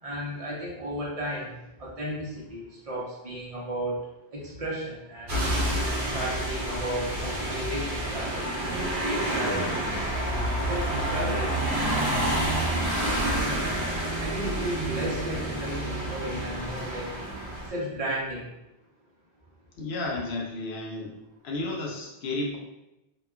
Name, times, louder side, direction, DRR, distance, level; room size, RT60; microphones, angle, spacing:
voice 1, 0.0-5.4 6.1-9.7 10.6-12.3 13.4-13.8 14.2-17.1 17.7-18.5, right 1 dB, 40° right, -5 dB, 0.8 m, -34 dB
sound 1, 5.3-17.7, right 1 dB, 65° right, 1.1 m, -28 dB
voice 2, 19.8-21.1 21.4-22.6, left 2 dB, 80° left, -1 dB, 0.8 m, -32 dB
2.9 x 2.2 x 2.3 m, 0.93 s
omnidirectional pair, 1.1 m